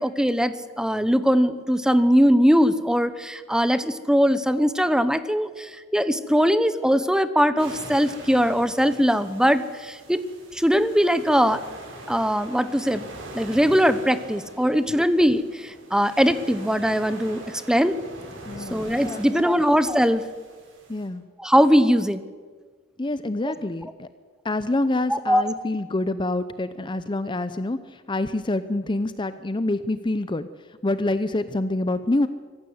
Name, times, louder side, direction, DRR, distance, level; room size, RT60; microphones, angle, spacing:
voice 1, 0.0-10.2 10.6-11.6 12.1-13.0 13.3-17.9 18.7-20.2 21.4-22.2 25.1-25.4, equal, 5° right, 12 dB, 0.9 m, -21 dB
sound 1, 7.6-21.0, right 1 dB, 80° right, 7.4 m, -43 dB
voice 2, 18.5-19.6 20.9-21.2 23.0-24.1 24.4-30.5 30.8-32.3, left 2 dB, 25° left, 12 dB, 0.6 m, -27 dB
25.0 x 15.0 x 8.1 m, 1.5 s
head